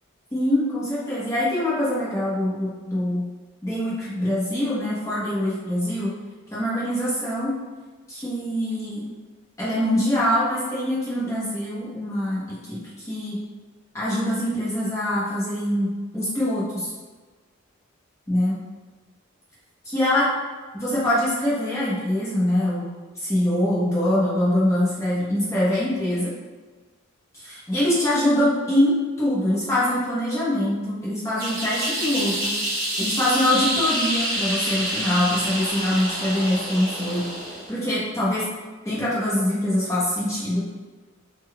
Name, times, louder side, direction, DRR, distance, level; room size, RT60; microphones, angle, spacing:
voice 1, 0.3-3.2 3.6-6.1 6.5-7.6 8.1-9.0 9.6-13.4 13.9-15.9 16.1-16.9 18.3-18.5 19.8-20.3 20.7-26.3 27.3-32.5 33.0-38.5 38.8-40.6, left 1 dB, 15° left, -9 dB, 0.8 m, -24 dB
sound 1, 31.4-37.7, equal, 45° right, 1.2 m, -27 dB
3.7 x 2.4 x 3.2 m, 1.3 s
head